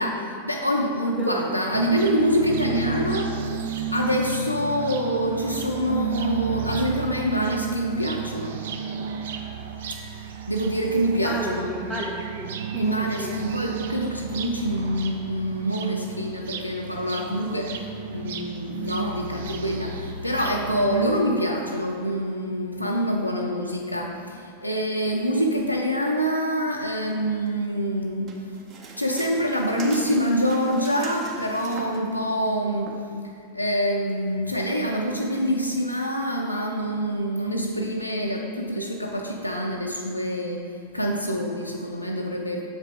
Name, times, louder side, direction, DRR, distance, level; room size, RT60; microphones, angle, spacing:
voice 1, 0.0-8.7 9.9-11.7 12.8-28.3 29.0-32.9 33.5-40.7 40.9-42.6, equal, 90° left, -1 dB, 0.5 m, -26 dB
voice 2, 1.1-1.4 11.2-13.4, right 1 dB, 5° left, -5 dB, 0.6 m, -32 dB
sound 1, 1.7-21.1, right 6 dB, 60° right, 0.4 m, -32 dB
sound 2, 28.3-32.1 32.9-33.0, right 3 dB, 35° right, 0.8 m, -41 dB
7.1 x 4.9 x 3.7 m, 2.2 s
figure-of-eight pair, 90°, 0 cm